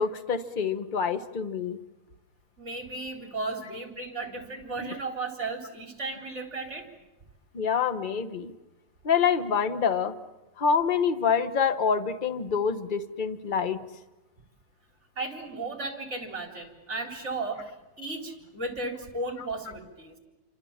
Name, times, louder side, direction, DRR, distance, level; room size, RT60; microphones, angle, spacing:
voice 1, 0.0-1.8 4.8-5.0 7.5-8.5 9.0-10.1 10.6-13.8, left 6 dB, 30° left, 9 dB, 1.0 m, -26 dB
voice 2, 2.6-6.9 15.2-20.2, right 3 dB, 30° right, 2 dB, 4.2 m, -35 dB
29.0 x 25.5 x 7.3 m, 1.0 s
omnidirectional pair, 2.3 m